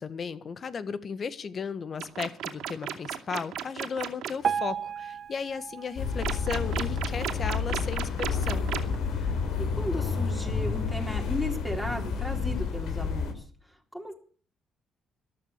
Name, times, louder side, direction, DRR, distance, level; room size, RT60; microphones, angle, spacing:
voice 1, 0.0-8.7, left 6 dB, 40° left, 14 dB, 1.6 m, -35 dB
sound 1, 2.0-4.3 6.2-9.0, right 10 dB, 80° right, 2.8 m, -33 dB
Piano, 4.4-7.5 8.1-8.2 8.5-8.6 9.3-9.4 10.0-10.1, right 7 dB, 45° right, 1.0 m, -34 dB
sound 2, 6.0-13.3, left 5 dB, 80° left, 3.6 m, -30 dB
voice 2, 9.8-14.1, equal, 5° left, 3 dB, 3.7 m, -35 dB
14.0 x 12.5 x 8.1 m, 0.43 s
cardioid pair, 125°, 0 cm